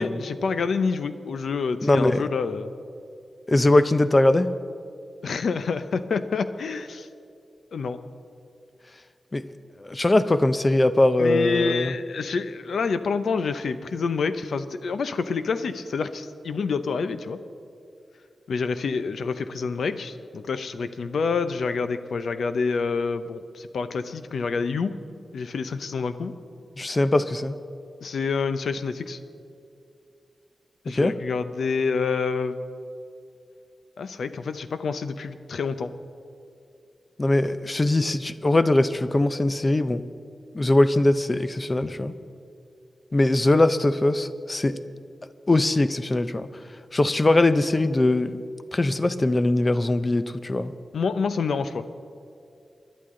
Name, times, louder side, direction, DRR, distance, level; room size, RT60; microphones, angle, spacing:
voice 1, 0.0-2.7 5.2-7.1 7.7-8.0 11.2-17.4 18.5-25.0 25.3-26.3 28.0-29.2 30.8-32.6 34.0-35.9 50.9-51.8, left 5 dB, 80° left, 11 dB, 0.6 m, -27 dB
voice 2, 1.8-2.2 3.5-4.5 9.3-9.4 9.8-12.0 26.8-27.6 30.9-31.1 37.2-40.0 40.5-42.1 43.1-44.8 45.5-46.5 46.9-48.4 48.7-50.7, left 2 dB, 20° left, 12 dB, 0.5 m, -21 dB
25.0 x 11.5 x 3.8 m, 2.5 s
wide cardioid pair, 180°, 0 cm